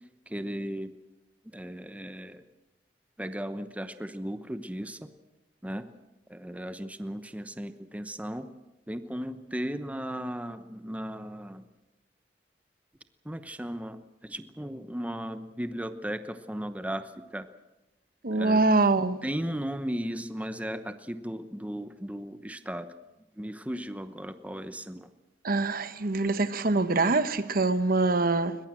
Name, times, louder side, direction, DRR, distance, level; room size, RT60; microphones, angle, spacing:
voice 1, 0.3-0.9 1.5-2.4 3.2-5.1 5.6-5.9 6.3-8.5 8.9-11.6 13.2-17.5 18.3-18.6 19.2-22.9 23.4-25.1, equal, 10° right, 0.9 m, -36 dB
voice 2, 18.2-19.2 25.4-28.6, right 3 dB, 55° right, 1.1 m, -24 dB
21.5 x 21.5 x 7.5 m
head